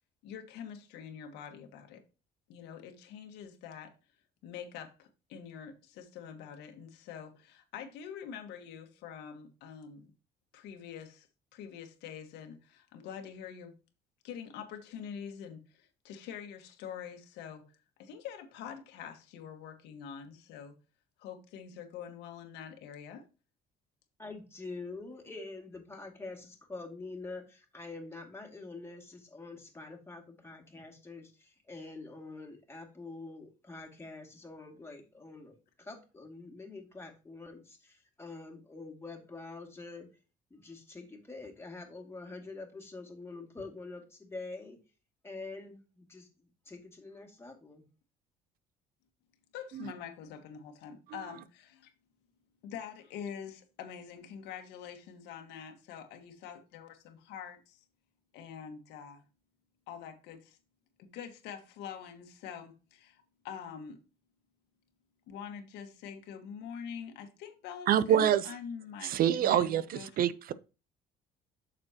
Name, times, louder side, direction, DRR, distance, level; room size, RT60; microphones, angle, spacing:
voice 1, 0.2-2.0 2.5-3.9 4.4-10.1 10.5-11.3 11.5-13.7 14.2-20.7 21.2-23.2 49.5-51.9 52.6-57.8 58.3-59.2 59.9-60.6 61.0-64.0 65.3-70.1, left 7 dB, 90° left, 1.6 m, -45 dB
voice 2, 24.2-40.1 40.5-44.8 45.2-46.3 46.7-47.9, left 3 dB, 15° left, 2.3 m, -46 dB
voice 3, 67.9-68.4 69.0-70.5, right 10 dB, 60° right, 0.5 m, -26 dB
8.5 x 6.6 x 2.9 m
cardioid pair, 110°, 17 cm